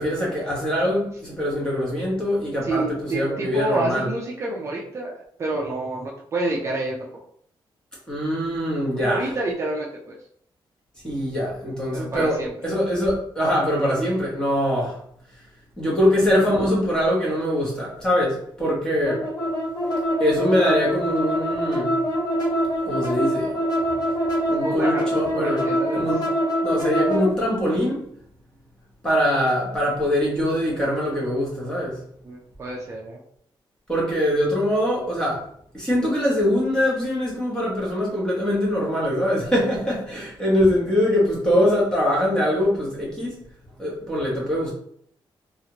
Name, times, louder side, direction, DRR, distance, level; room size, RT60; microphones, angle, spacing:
voice 1, 0.0-4.1 8.1-9.3 11.0-15.0 15.8-19.2 20.2-22.0 22.8-23.6 24.5-25.7 25.9-26.2 26.6-28.0 29.0-32.0 33.9-35.4 35.7-43.3 43.8-44.7, equal, 10° left, -5 dB, 0.9 m, -23 dB
voice 2, 2.6-7.1 9.0-10.2 11.9-12.5 24.6-25.0 25.3-26.1 32.2-33.2, right 2 dB, 30° right, -2 dB, 0.4 m, -28 dB
sound 1, 19.0-27.3, equal, 45° left, 0.9 m, -24 dB
2.8 x 2.4 x 2.8 m, 0.66 s
wide cardioid pair, 180°, 9 cm